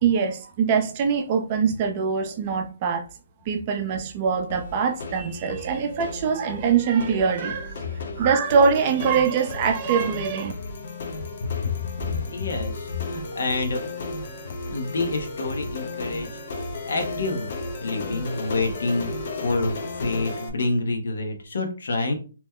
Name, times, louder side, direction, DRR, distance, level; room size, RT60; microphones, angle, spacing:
voice 1, 0.0-3.1 3.5-7.8 8.2-10.5, right 6 dB, 30° right, 0.5 m, -23 dB
sound 1, 4.5-20.5, left 2 dB, 50° left, 0.6 m, -34 dB
voice 2, 11.4-11.7 12.0-13.8 14.7-16.3 16.9-17.5 17.8-22.1, left 3 dB, 70° left, 1.0 m, -27 dB
2.9 x 2.1 x 3.6 m
hypercardioid pair, 155°, 0 cm